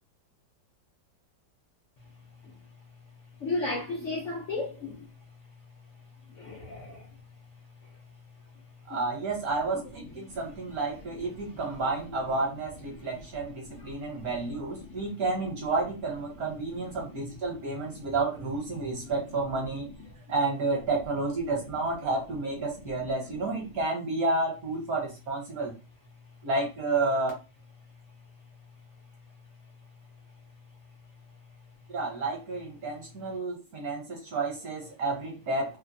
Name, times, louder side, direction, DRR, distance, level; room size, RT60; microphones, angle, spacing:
voice 1, 3.4-5.1 6.3-7.1 8.9-9.0 10.2-10.4 11.5-11.6 12.9-13.0 13.7-14.3 14.8-15.1 17.0-17.2 17.9-18.1 18.8-18.9 20.1-20.2, left 2 dB, 75° left, 0.6 m, -36 dB
voice 2, 8.9-19.9 20.3-25.7 26.4-27.3 31.9-35.8, right 3 dB, 55° right, 1.3 m, -31 dB
3.2 x 2.2 x 2.5 m
omnidirectional pair, 2.1 m